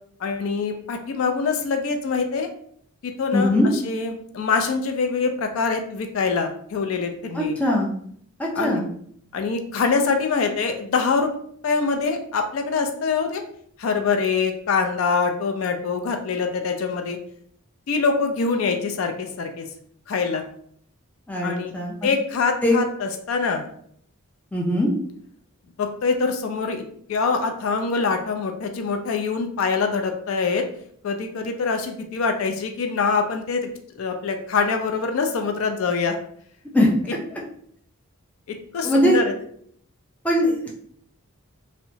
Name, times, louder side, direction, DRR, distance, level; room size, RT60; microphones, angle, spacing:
voice 1, 0.2-2.5 3.0-7.6 8.5-8.8 9.3-11.3 11.6-13.4 13.8-17.2 17.9-19.7 20.1-20.4 21.4-21.7 22.0-23.7 25.8-26.8 27.1-30.7 31.0-33.7 33.9-36.2 38.7-39.3, left 4 dB, 70° left, 5 dB, 0.4 m, -24 dB
voice 2, 3.3-3.7 7.3-7.9 8.4-8.9 21.3-21.9 22.6-22.8 24.5-25.0 36.7-36.9 38.8-39.2 40.2-40.9, left 1 dB, 5° left, -3 dB, 0.4 m, -20 dB
2.7 x 2.1 x 2.6 m, 0.63 s
head